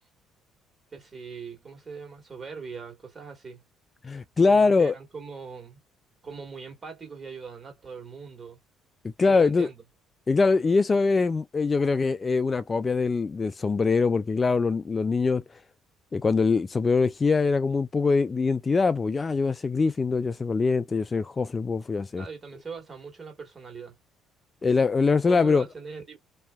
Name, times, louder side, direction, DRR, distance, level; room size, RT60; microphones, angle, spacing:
voice 1, 0.9-3.6 4.5-5.8 6.2-8.6 9.3-9.8 22.1-24.0 25.3-26.2, right 5 dB, 35° right, 1.6 m, -41 dB
voice 2, 4.0-4.9 9.2-9.7 10.3-15.4 16.1-22.2 24.6-25.7, left 4 dB, 30° left, 0.3 m, -23 dB
2.7 x 2.1 x 2.2 m
hypercardioid pair, 55°, 0 cm